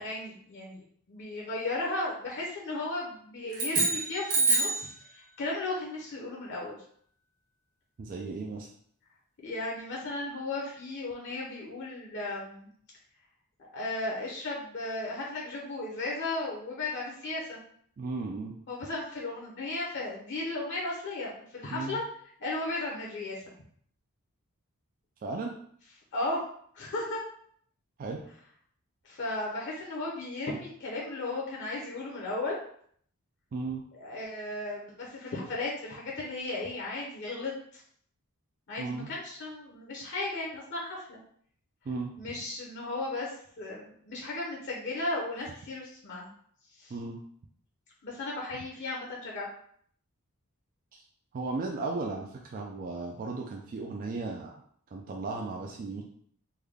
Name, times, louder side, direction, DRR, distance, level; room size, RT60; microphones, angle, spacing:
voice 1, 0.0-6.8 9.4-12.7 13.7-17.6 18.7-22.0 22.4-23.4 26.1-26.4 26.7-27.2 29.0-32.6 33.9-37.8 38.7-41.2 42.2-46.3 46.8-46.9 48.0-49.5, left 2 dB, 55° left, -3 dB, 0.7 m, -35 dB
sound 1, 3.5-4.9, right 3 dB, 70° right, 1.2 m, -26 dB
voice 2, 8.0-8.7 18.0-18.6 21.7-22.0 25.2-25.5 28.0-28.2 33.5-33.8 38.8-39.1 41.9-42.1 46.9-47.2 50.9-51.0 51.3-54.6 54.9-56.0, right 3 dB, 40° right, 1 dB, 0.3 m, -35 dB
3.3 x 2.2 x 3.5 m, 0.62 s
head